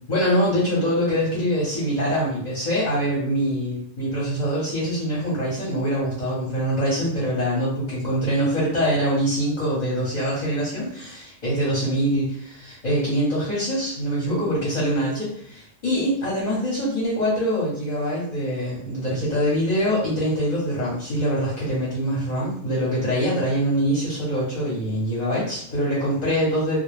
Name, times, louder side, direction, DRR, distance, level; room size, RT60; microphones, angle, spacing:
voice 1, 0.1-26.8, equal, 40° left, -6 dB, 0.8 m, -24 dB
2.2 x 2.1 x 3.2 m, 0.66 s
omnidirectional pair, 1.4 m